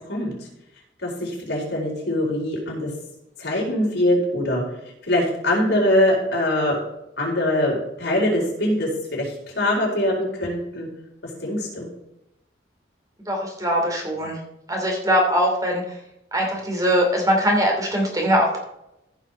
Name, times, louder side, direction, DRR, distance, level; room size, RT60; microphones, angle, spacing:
voice 1, 1.0-2.9 3.4-4.6 5.1-6.8 7.2-10.9 11.4-11.9, left 1 dB, 75° left, -3 dB, 4.8 m, -23 dB
voice 2, 13.3-14.4 14.7-15.8 16.3-18.6, equal, 20° right, 0 dB, 2.6 m, -21 dB
15.0 x 5.9 x 4.4 m, 0.86 s
head